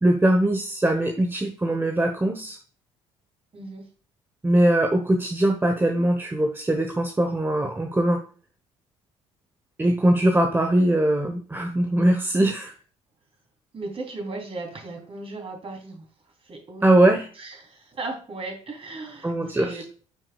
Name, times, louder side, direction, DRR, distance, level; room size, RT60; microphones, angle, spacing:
voice 1, 0.0-2.6 4.4-8.2 9.8-12.7 16.8-17.3 19.2-19.8, right 1 dB, 15° right, 5 dB, 1.0 m, -21 dB
voice 2, 13.7-16.1 16.4-17.0 17.4-19.8, right 3 dB, 35° right, 1 dB, 3.4 m, -36 dB
9.3 x 6.0 x 2.3 m, 0.40 s
figure-of-eight pair, 50°, 16 cm